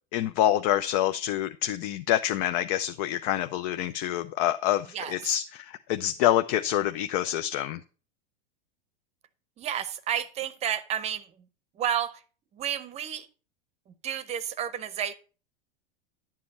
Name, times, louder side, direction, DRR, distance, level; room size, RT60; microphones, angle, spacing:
voice 1, 0.1-7.8, left 12 dB, 45° left, 0.6 m, -26 dB
voice 2, 9.6-11.3 11.8-12.2 12.6-13.3 14.0-15.1, right 9 dB, 20° right, 0.8 m, -31 dB
11.5 x 7.5 x 4.2 m
supercardioid pair, 155°, 29 cm